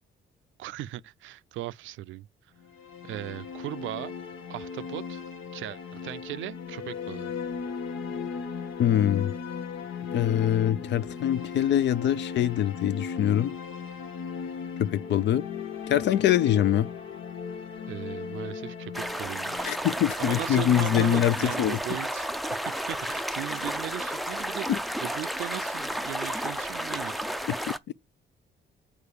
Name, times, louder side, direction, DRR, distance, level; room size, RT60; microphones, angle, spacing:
voice 1, 0.6-2.3 3.0-4.2 4.5-5.2 5.5-7.3 17.9-19.7 20.2-27.2, right 14 dB, 80° right, 0.4 m, -38 dB
sound 1, 2.6-20.6, left 6 dB, 85° left, 1.0 m, -37 dB
voice 2, 8.8-9.3 10.1-13.5 14.8-15.4 15.9-16.9 19.6-21.8 24.7-24.8, left 11 dB, 65° left, 0.4 m, -24 dB
sound 2, 18.9-27.8, equal, ahead, 0.4 m, -32 dB
6.6 x 4.8 x 6.9 m
cardioid pair, 90°, 20 cm